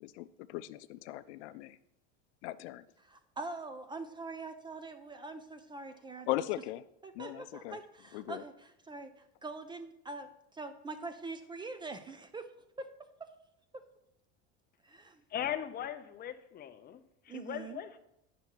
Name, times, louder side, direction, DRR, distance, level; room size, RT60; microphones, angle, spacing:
voice 1, 0.0-1.8 2.4-2.8 6.3-6.8 7.1-7.8 8.1-8.4, left 16 dB, 80° left, 14 dB, 0.5 m, -38 dB
voice 2, 3.0-6.3 7.0-12.5 12.8-12.9 13.2-13.3 13.7-13.8 14.8-15.2 17.3-17.8, right 3 dB, 15° right, 9 dB, 0.4 m, -44 dB
voice 3, 15.3-18.0, left 10 dB, 30° left, 10 dB, 0.6 m, -39 dB
9.2 x 6.0 x 4.5 m, 0.83 s
supercardioid pair, 130°, 34 cm